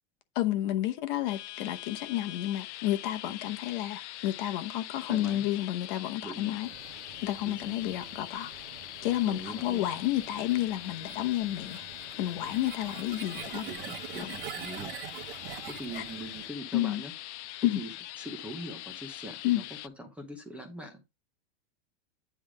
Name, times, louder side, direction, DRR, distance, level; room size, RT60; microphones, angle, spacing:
voice 1, 0.3-6.7 7.2-8.5 9.0-11.8 12.2-13.7 14.1-14.3 15.9-16.0 16.7-17.0 17.6-17.8 19.4-19.6, left 14 dB, 40° left, 1.0 m, -30 dB
sound 1, 1.3-19.9, left 15 dB, 75° left, 0.5 m, -43 dB
voice 2, 5.1-5.5 6.2-6.5 7.5-7.8 9.3-9.8 13.6-14.9 15.7-17.1 17.8-19.6 20.0-21.1, right 1 dB, 5° right, 0.7 m, -42 dB
sound 2, 6.6-16.5, right 11 dB, 50° right, 0.9 m, -45 dB
9.6 x 3.5 x 4.8 m
supercardioid pair, 165°, 35 cm